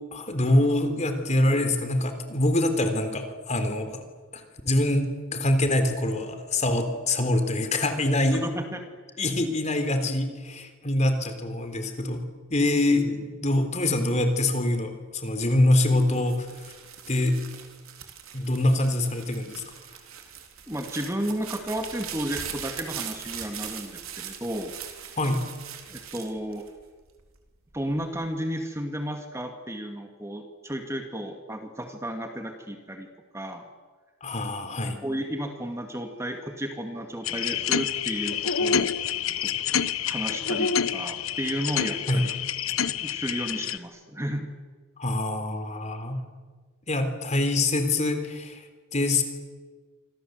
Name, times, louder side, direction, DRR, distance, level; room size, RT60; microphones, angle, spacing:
voice 1, 0.1-4.0 4.3-8.5 9.2-12.3 12.5-16.7 17.1-17.4 18.3-19.6 25.2-25.4 34.2-35.0 42.1-42.3 45.0-46.2 46.9-48.6 48.9-49.2, left 1 dB, 35° left, 7 dB, 3.6 m, -25 dB
voice 2, 8.3-8.8 9.1-9.2 20.7-24.7 25.9-26.7 27.7-33.1 33.3-33.6 34.7-38.9 39.4-39.5 40.1-42.4 43.0-44.5, equal, 15° right, 5 dB, 2.2 m, -33 dB
sound 1, 15.8-27.2 27.7-28.3, right 9 dB, 90° right, 3.9 m, -40 dB
sound 2, 37.2-43.8, left 7 dB, 85° left, 1.1 m, -27 dB
28.0 x 25.5 x 8.1 m, 1.4 s
head